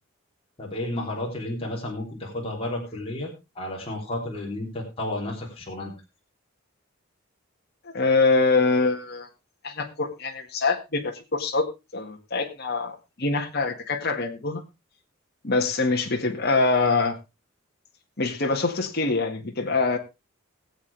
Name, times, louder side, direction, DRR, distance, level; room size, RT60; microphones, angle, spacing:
voice 1, 0.6-3.3 3.6-5.9, left 1 dB, 30° left, -2 dB, 3.4 m, -32 dB
voice 2, 7.9-9.3 9.6-11.6 11.9-14.6 15.4-17.2 18.2-20.0, left 3 dB, 50° left, 2 dB, 1.9 m, -24 dB
20.5 x 8.0 x 3.4 m, 0.26 s
head